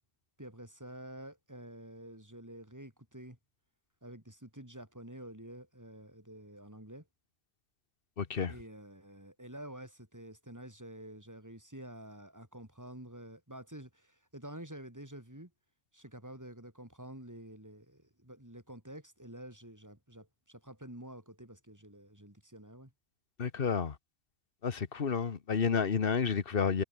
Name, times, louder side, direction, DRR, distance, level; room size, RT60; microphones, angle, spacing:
voice 1, 0.4-3.4 4.0-7.1 8.5-15.5 15.9-22.9, right 1 dB, 15° right, 3.9 m, -49 dB
voice 2, 8.2-8.5 23.4-24.0 24.6-26.8, left 6 dB, 50° left, 1.3 m, -30 dB
omnidirectional pair, 1.2 m